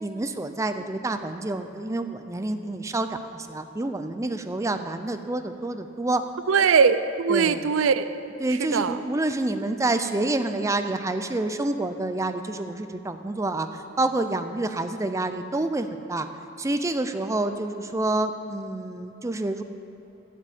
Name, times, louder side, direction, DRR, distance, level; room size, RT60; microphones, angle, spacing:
voice 1, 0.0-6.2 7.3-7.7 8.4-16.3 16.6-19.6, right 2 dB, 15° right, 8 dB, 0.4 m, -28 dB
voice 2, 6.5-8.2 8.6-9.0, right 6 dB, 75° right, 13 dB, 0.4 m, -21 dB
10.0 x 8.2 x 8.5 m, 3.0 s
head